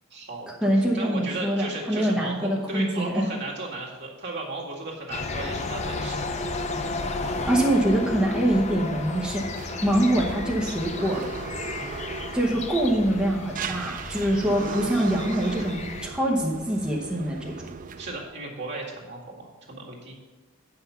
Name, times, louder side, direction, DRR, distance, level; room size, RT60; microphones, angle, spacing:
voice 1, 0.1-6.2 7.2-7.5 18.0-20.1, right 2 dB, 55° right, -3 dB, 1.9 m, -35 dB
voice 2, 0.6-3.3 7.5-9.5 9.8-11.3 12.3-17.5, right 1 dB, 5° right, -3 dB, 0.9 m, -24 dB
sound 1, 5.1-16.1, left 3 dB, 35° left, 0.6 m, -33 dB
sound 2, 9.0-18.2, right 5 dB, 40° right, 0.4 m, -38 dB
8.8 x 5.8 x 5.6 m, 1.3 s
head